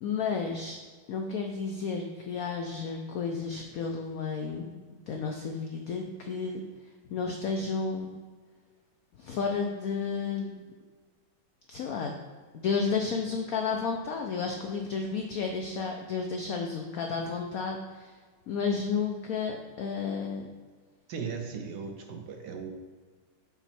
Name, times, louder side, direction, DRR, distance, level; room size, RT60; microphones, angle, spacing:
voice 1, 0.0-0.8 1.1-6.6 7.1-8.2 9.2-10.6 11.7-12.1 12.5-18.1 18.5-20.5, left 5 dB, 85° left, 2 dB, 0.7 m, -32 dB
voice 2, 21.1-22.7, right 6 dB, 70° right, 4 dB, 1.1 m, -37 dB
6.0 x 4.5 x 4.2 m, 1.5 s
omnidirectional pair, 2.2 m